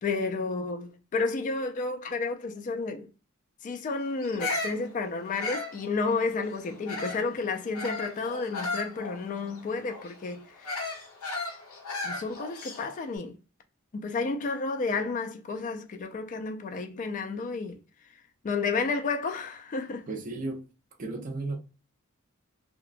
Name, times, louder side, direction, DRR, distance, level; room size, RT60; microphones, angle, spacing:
voice 1, 0.0-3.1 3.6-10.8 12.0-13.4 13.9-17.8 18.4-20.1, left 4 dB, 35° left, 0.3 m, -31 dB
Bird vocalization bird call bird song, 4.2-7.3 7.7-13.0, left 2 dB, 80° left, 0.8 m, -36 dB
voice 2, 20.1-20.7 21.0-21.6, right 2 dB, 40° right, 0.5 m, -34 dB
2.8 x 2.1 x 2.4 m
head